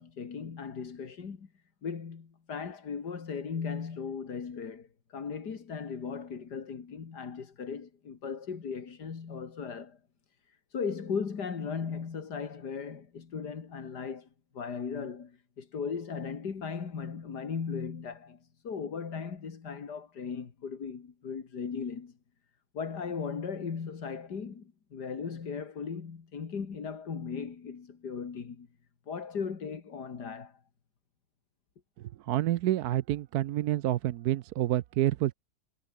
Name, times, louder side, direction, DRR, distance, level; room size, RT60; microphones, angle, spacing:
voice 1, 0.0-1.5 1.8-10.0 10.5-14.3 14.5-22.1 22.7-28.7 29.1-30.6, left 6 dB, 90° left, 2.7 m, -37 dB
voice 2, 32.2-35.3, right 14 dB, 75° right, 1.1 m, -28 dB
omnidirectional pair, 1.7 m